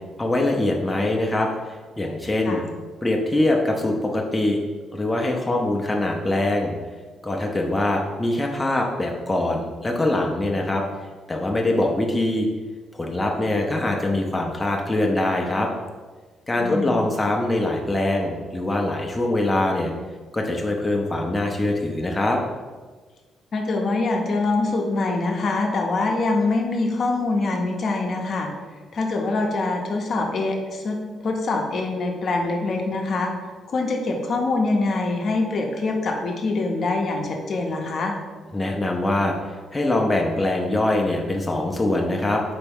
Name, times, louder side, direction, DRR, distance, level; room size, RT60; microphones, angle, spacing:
voice 1, 0.2-2.6 3.0-4.6 4.9-6.7 7.2-10.8 11.3-12.5 12.9-15.7 16.5-19.9 20.3-22.4 38.5-42.4, left 1 dB, 15° left, 0 dB, 0.5 m, -23 dB
voice 2, 16.6-17.0 23.5-28.5 28.9-31.0 31.2-33.3 33.7-38.2, left 3 dB, 55° left, 1 dB, 0.7 m, -24 dB
4.2 x 3.5 x 3.5 m, 1.4 s
cardioid pair, 90°, 0 cm